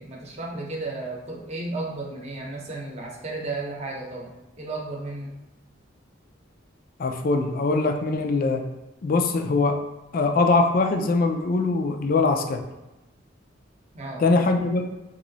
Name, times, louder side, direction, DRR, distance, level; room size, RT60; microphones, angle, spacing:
voice 1, 0.0-5.3 13.9-14.2, right 2 dB, 35° right, -2 dB, 0.8 m, -34 dB
voice 2, 7.0-8.6 9.0-9.8 10.1-12.6 14.2-14.9, left 3 dB, 50° left, 5 dB, 0.4 m, -22 dB
3.0 x 2.6 x 3.9 m, 1.0 s
head